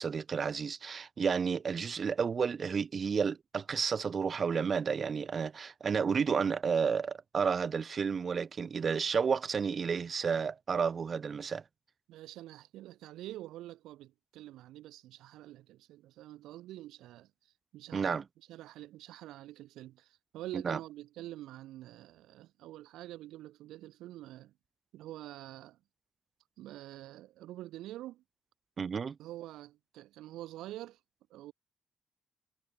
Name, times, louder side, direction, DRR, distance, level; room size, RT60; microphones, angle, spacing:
voice 1, 0.0-11.6 17.9-18.2 20.5-20.8 28.8-29.2, right 6 dB, 45° right, 1.0 m, -31 dB
voice 2, 12.1-17.3 17.7-18.1 18.5-24.5 24.9-25.8 26.6-28.2 29.2-31.0 31.3-31.5, right 15 dB, 90° right, 5.3 m, -46 dB
cardioid pair, 90°, 0 cm